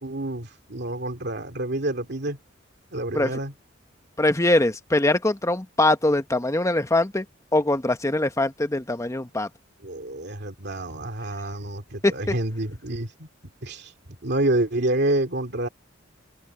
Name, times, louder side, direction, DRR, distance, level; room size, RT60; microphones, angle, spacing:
voice 1, 0.0-2.4 2.9-3.5 9.8-13.3 13.6-13.9 14.2-15.7, right 1 dB, 60° right, 2.7 m, -28 dB
voice 2, 4.2-7.2 7.5-9.5 12.0-12.3, left 2 dB, 15° left, 1.1 m, -22 dB
head